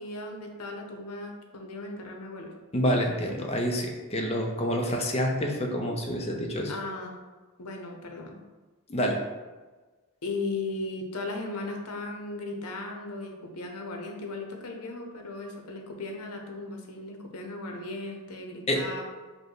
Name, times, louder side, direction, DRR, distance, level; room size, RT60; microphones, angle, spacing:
voice 1, 0.0-2.5 6.7-7.2 7.6-8.4 10.2-19.0, left 2 dB, 85° left, 2 dB, 0.8 m, -37 dB
voice 2, 2.7-6.7 8.9-9.2 18.7-18.8, equal, 30° left, 1 dB, 0.6 m, -27 dB
5.1 x 2.2 x 4.6 m, 1.3 s
head